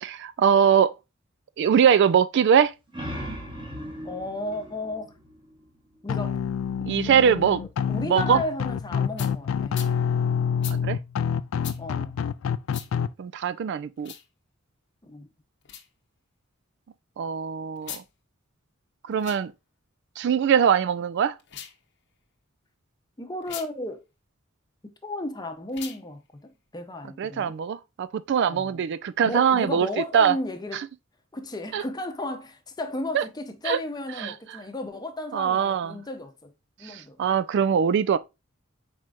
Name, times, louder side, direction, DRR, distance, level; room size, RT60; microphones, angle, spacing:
voice 1, 0.0-0.9 1.6-2.7 6.9-7.6 8.0-8.4 10.8-11.0 13.2-14.1 17.2-18.0 19.1-19.5 20.2-21.4 27.2-29.9 30.1-30.4 31.7-31.8 33.1-33.2 33.6-33.8 34.2-34.3 35.3-36.0 36.8-38.2, right 7 dB, 55° right, 0.3 m, -22 dB
sound 1, 2.7-6.1, equal, 25° right, 1.2 m, -38 dB
voice 2, 4.0-5.1 6.0-6.4 6.9-9.9 11.8-12.2 15.0-15.3 23.2-24.0 25.0-27.5 28.5-28.8 29.3-30.9 31.3-36.5 36.8-37.2, left 1 dB, 20° left, 0.7 m, -34 dB
sound 2, 6.1-13.1, left 7 dB, 75° left, 0.3 m, -27 dB
sound 3, 9.2-9.3 9.7-9.9 10.6-10.8 11.6-11.8 12.7-12.9 14.0-14.2 15.6-15.9 17.8-18.1 19.1-19.4 21.4-21.8 23.4-23.7 25.7-26.0, left 10 dB, 60° left, 0.8 m, -39 dB
4.8 x 4.4 x 2.4 m
head